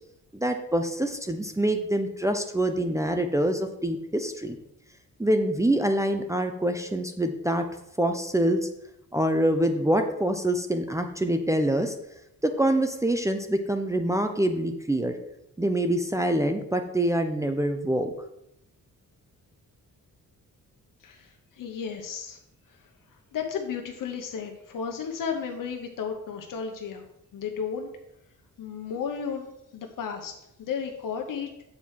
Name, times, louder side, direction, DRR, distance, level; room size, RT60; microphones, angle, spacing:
voice 1, 0.3-4.6 5.2-7.6 8.0-8.6 9.1-11.9 12.4-15.1 15.6-18.1, right 1 dB, 10° right, 6 dB, 0.5 m, -25 dB
voice 2, 21.0-22.4 22.7-22.8 23.3-27.0 27.3-27.9 28.6-31.5, left 6 dB, 80° left, 3 dB, 0.9 m, -34 dB
7.3 x 4.4 x 6.4 m, 0.82 s
wide cardioid pair, 140°, 32 cm